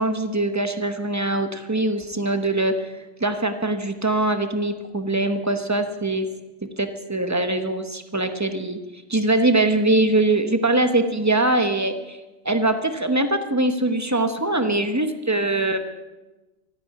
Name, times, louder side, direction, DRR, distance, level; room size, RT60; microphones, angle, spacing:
voice 1, 0.0-6.3 6.8-8.8 9.1-12.2 12.4-15.8, right 2 dB, 25° right, 7 dB, 0.3 m, -22 dB
14.0 x 9.9 x 9.3 m, 1.1 s
omnidirectional pair, 1.9 m